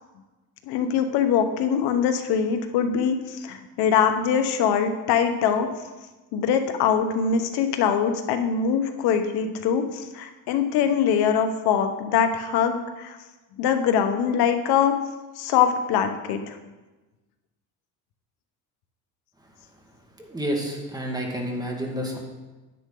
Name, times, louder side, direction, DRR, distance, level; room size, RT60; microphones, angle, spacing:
voice 1, 0.7-5.7 6.3-13.2 13.6-15.0 15.4-16.6, left 7 dB, 85° left, 7 dB, 1.2 m, -23 dB
voice 2, 20.2-22.2, equal, 10° right, 0 dB, 1.8 m, -29 dB
9.8 x 9.6 x 3.9 m, 1.2 s
cardioid pair, 125°, 38 cm